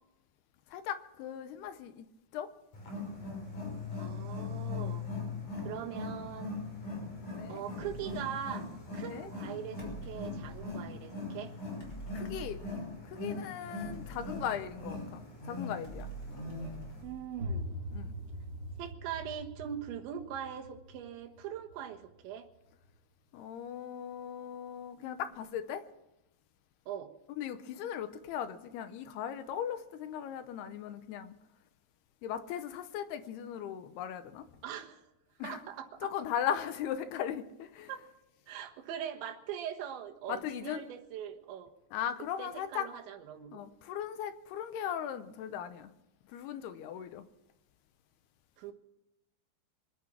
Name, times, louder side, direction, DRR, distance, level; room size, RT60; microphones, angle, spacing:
voice 1, 0.7-2.1 2.3-2.5 7.2-7.6 9.0-9.3 12.1-12.6 13.1-16.1 17.9-18.1 23.3-25.8 27.4-31.3 32.2-34.5 35.4-35.6 36.0-37.9 40.3-40.9 41.9-42.8 43.5-45.9 46.3-47.3, left 9 dB, 75° left, 10 dB, 2.6 m, -38 dB
Wild animals, 2.7-17.0, left 3 dB, 45° left, 5.2 m, -40 dB
voice 2, 3.9-5.0 5.7-6.6 7.5-8.7 8.9-9.8 10.1-11.5 17.0-17.7 18.8-22.5 26.9-27.1 34.6-35.0 35.4-36.1 37.9-38.0 38.5-41.7 42.4-43.6 48.6-48.7, right 9 dB, 80° right, 3 dB, 3.7 m, -41 dB
sound 1, 7.8-8.3 9.8-10.7 11.8-13.0 13.8-15.2 15.8-17.7, right 2 dB, 25° left, 4.3 m, -47 dB
sound 2, 17.4-23.0, equal, 20° right, 4.1 m, -43 dB
24.5 x 9.3 x 6.1 m, 0.91 s
omnidirectional pair, 5.1 m